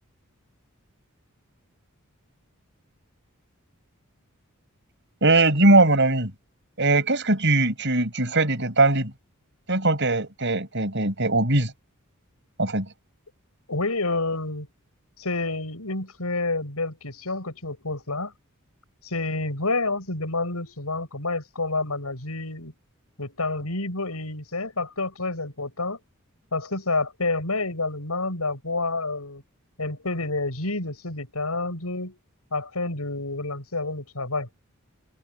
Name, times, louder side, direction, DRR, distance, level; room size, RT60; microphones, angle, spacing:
voice 1, 5.2-6.3 6.8-9.1 9.7-11.7 12.6-12.9, right 2 dB, 55° right, 7.0 m, -20 dB
voice 2, 13.7-14.7 15.2-18.3 19.0-22.7 23.2-26.0 26.5-29.4 29.8-32.2 32.5-34.5, left 2 dB, 90° left, 7.1 m, -29 dB
head